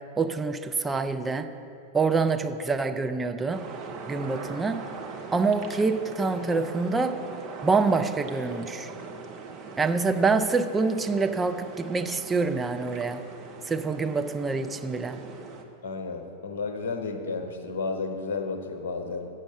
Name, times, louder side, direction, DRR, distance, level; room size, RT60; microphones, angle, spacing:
voice 1, 0.2-1.5 1.9-3.6 4.1-4.9 5.3-7.2 7.6-8.9 9.8-13.2 13.7-15.2, right 4 dB, 15° right, 8 dB, 0.5 m, -26 dB
sound 1, 3.5-15.6, right 4 dB, 35° right, 0.9 m, -41 dB
voice 2, 15.8-19.3, left 4 dB, 65° left, 6 dB, 0.9 m, -32 dB
8.0 x 6.3 x 7.5 m, 2.9 s
figure-of-eight pair, 90°, 0 cm